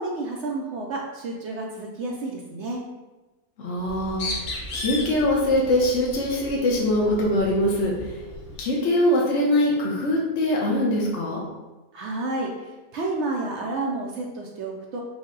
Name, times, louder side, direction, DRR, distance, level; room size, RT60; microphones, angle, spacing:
voice 1, 0.0-2.8 11.9-15.0, right 2 dB, 65° right, 0 dB, 0.7 m, -30 dB
voice 2, 3.6-4.4 4.7-8.2 8.6-11.4, left 1 dB, 55° left, -4 dB, 1.0 m, -23 dB
Bird, 3.8-8.7, left 2 dB, 80° left, 1.4 m, -36 dB
5.1 x 2.1 x 3.7 m, 1.1 s
omnidirectional pair, 1.6 m